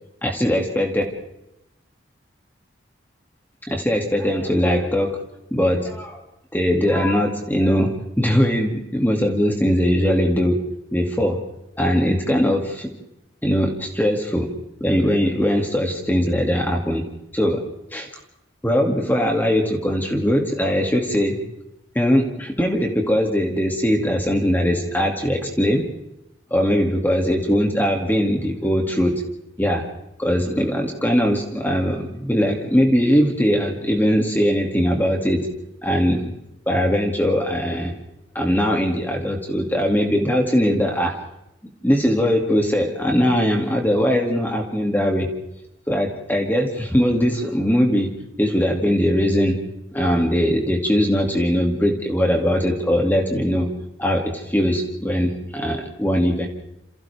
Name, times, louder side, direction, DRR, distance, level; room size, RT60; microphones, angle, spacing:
voice 1, 0.2-1.0 3.7-5.2 5.5-6.2 6.5-10.6 10.9-11.4 11.8-12.9 13.4-14.5 14.8-17.0 17.3-17.6 17.9-18.1 18.6-21.4 21.9-25.8 26.5-29.2 29.6-29.8 30.2-35.5 35.8-36.3 36.7-37.9 38.3-41.1 41.8-45.3 45.9-48.1 48.4-49.6 49.9-53.7 54.0-56.5, equal, 10° left, 1 dB, 2.4 m, -20 dB
29.0 x 29.0 x 3.5 m, 0.88 s
head